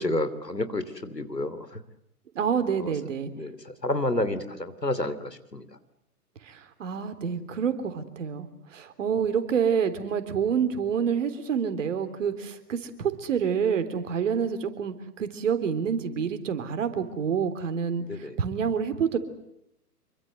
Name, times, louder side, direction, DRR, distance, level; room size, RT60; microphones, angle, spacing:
voice 1, 0.0-1.8 2.8-2.9 3.3-5.7 18.1-18.4, left 1 dB, 90° left, 12 dB, 3.0 m, -30 dB
voice 2, 2.4-3.3 6.5-19.2, right 7 dB, 50° right, 10 dB, 3.6 m, -28 dB
27.0 x 24.0 x 8.0 m, 0.77 s
figure-of-eight pair, 120°, 48 cm